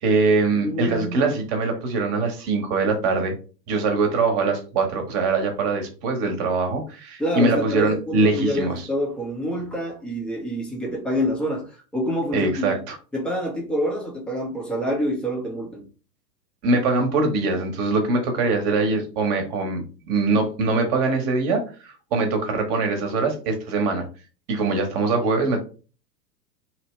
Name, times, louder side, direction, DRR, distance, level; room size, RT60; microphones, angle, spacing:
voice 1, 0.0-3.3 3.7-8.7 12.3-13.0 16.6-24.0 24.5-25.6, right 3 dB, 35° right, 0.9 m, -23 dB
voice 2, 0.5-1.3 7.2-12.8 13.1-15.8, equal, ahead, 0.4 m, -27 dB
2.9 x 2.1 x 3.0 m
figure-of-eight pair, 100°, 49 cm